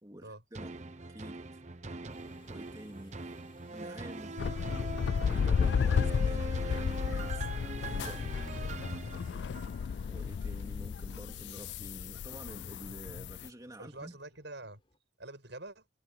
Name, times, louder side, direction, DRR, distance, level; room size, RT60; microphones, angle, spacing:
voice 1, 0.0-1.6 2.5-3.2 3.7-4.3 5.2-8.3 10.0-14.2, right 1 dB, 20° right, 2.8 m, -49 dB
sound 1, 0.5-9.9 10.4-10.5, right 3 dB, 35° right, 1.0 m, -42 dB
sound 2, 2.1-15.0, left 2 dB, 25° left, 4.2 m, -63 dB
sound 3, 4.4-13.5, left 6 dB, 60° left, 0.3 m, -33 dB
voice 2, 13.8-14.8 15.2-15.9, right 2 dB, 60° right, 7.6 m, -46 dB
head